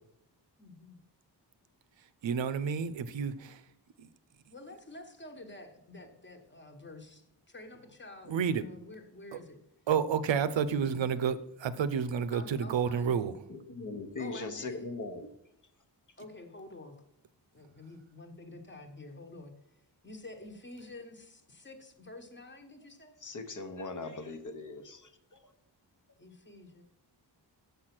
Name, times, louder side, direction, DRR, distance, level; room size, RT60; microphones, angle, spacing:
voice 1, 0.6-1.0 4.5-9.6 10.4-11.2 12.3-13.2 14.2-14.8 16.2-17.0 17.5-19.5 20.0-23.2 26.2-26.8, left 2 dB, 25° left, 5 dB, 1.2 m, -49 dB
voice 2, 2.0-3.7 4.0-4.1 8.3-8.7 9.3-9.4 9.9-13.5, right 7 dB, 85° right, 14 dB, 0.6 m, -30 dB
voice 3, 13.5-15.3 23.2-25.5, left 3 dB, 45° left, 8 dB, 0.9 m, -40 dB
6.9 x 6.4 x 5.9 m, 0.79 s
wide cardioid pair, 120°, 43 cm